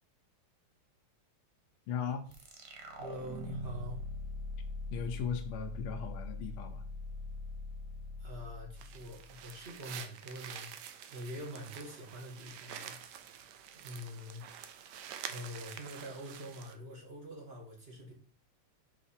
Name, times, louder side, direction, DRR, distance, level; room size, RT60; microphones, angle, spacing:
voice 1, 1.9-2.3 4.9-6.8, left 6 dB, 80° left, 4 dB, 1.6 m, -37 dB
sound 1, 2.3-9.6, left 2 dB, 50° right, 0.7 m, -42 dB
voice 2, 3.0-4.0 8.2-10.7 11.1-13.0 13.7-14.4 15.2-18.1, equal, 30° right, -1 dB, 1.5 m, -45 dB
sound 2, 8.8-16.7, right 9 dB, 75° right, 1.0 m, -48 dB
5.4 x 4.9 x 4.2 m, 0.43 s
omnidirectional pair, 2.4 m